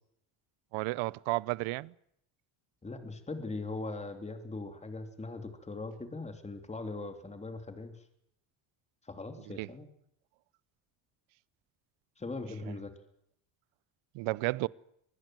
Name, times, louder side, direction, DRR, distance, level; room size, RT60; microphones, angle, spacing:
voice 1, 0.7-1.9 9.6-9.7 12.7-12.8 14.1-14.7, right 22 dB, 85° right, 0.8 m, -32 dB
voice 2, 2.8-7.9 9.0-9.9 12.2-12.9, left 3 dB, 15° left, 3.0 m, -40 dB
24.5 x 20.0 x 7.7 m
cardioid pair, 140°, 48 cm